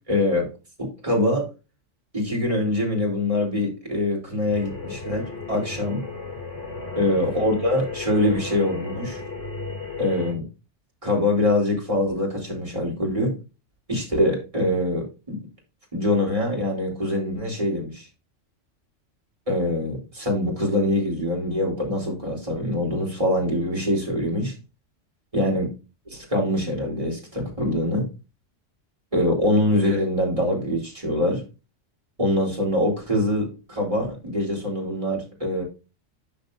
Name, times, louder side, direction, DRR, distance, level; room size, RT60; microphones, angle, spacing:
voice 1, 0.1-0.5 0.8-1.5 2.1-6.0 7.0-9.2 10.0-10.4 11.0-13.3 13.9-15.4 15.9-18.1 19.5-24.5 25.3-25.7 26.1-28.1 29.1-31.4 32.2-35.6, left 1 dB, 25° right, -2 dB, 4.0 m, -24 dB
sound 1, 4.5-10.3, left 3 dB, 85° left, 3.0 m, -34 dB
13.0 x 5.2 x 2.7 m, 0.29 s
omnidirectional pair, 1.3 m